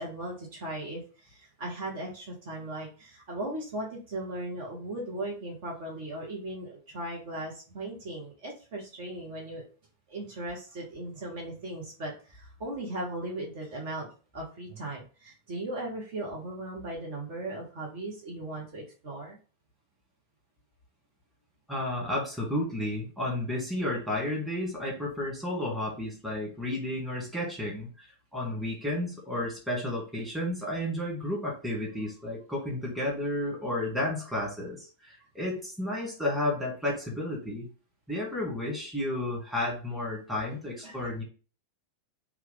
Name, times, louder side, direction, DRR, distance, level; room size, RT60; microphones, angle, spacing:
voice 1, 0.0-9.6 10.1-14.1 14.3-19.4 40.8-41.0, right 1 dB, 50° right, -2 dB, 1.0 m, -37 dB
voice 2, 21.7-37.7 38.1-41.2, left 1 dB, 5° right, -5 dB, 1.6 m, -32 dB
3.0 x 2.3 x 3.8 m, 0.37 s
figure-of-eight pair, 90°, 0 cm